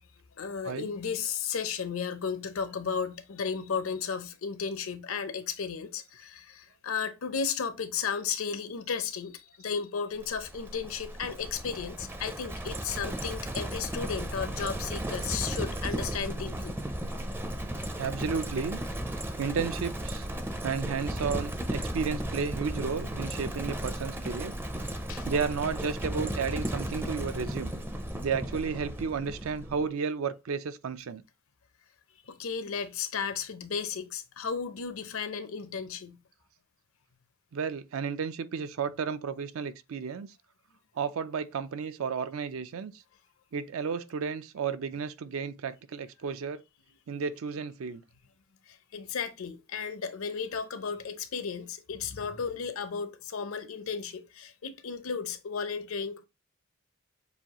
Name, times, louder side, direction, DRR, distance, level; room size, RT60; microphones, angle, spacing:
voice 1, 0.4-16.8 25.1-25.3 32.3-36.2 48.7-56.2, left 6 dB, 70° left, 0.6 m, -34 dB
Livestock farm animals working animals, 10.2-29.9, right 1 dB, 10° right, 0.5 m, -35 dB
voice 2, 18.0-18.8 19.4-20.3 20.6-24.5 25.3-27.7 28.2-31.2 37.5-40.3 41.0-42.9 43.5-46.6 47.1-48.0, right 6 dB, 70° right, 0.4 m, -32 dB
6.9 x 2.3 x 2.9 m
head